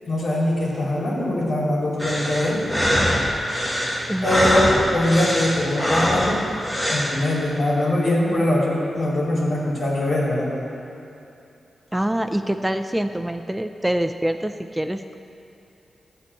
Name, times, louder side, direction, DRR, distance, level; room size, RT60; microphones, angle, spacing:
voice 1, 0.1-2.7 4.2-6.5 6.9-10.5, left 1 dB, 50° left, -5 dB, 2.7 m, -22 dB
sound 1, 2.0-7.2, equal, 10° left, 1.5 m, -23 dB
voice 2, 4.1-4.7 11.9-15.2, right 1 dB, 5° right, 8 dB, 0.4 m, -25 dB
13.0 x 4.4 x 8.1 m, 2.8 s
wide cardioid pair, 105°, 0 cm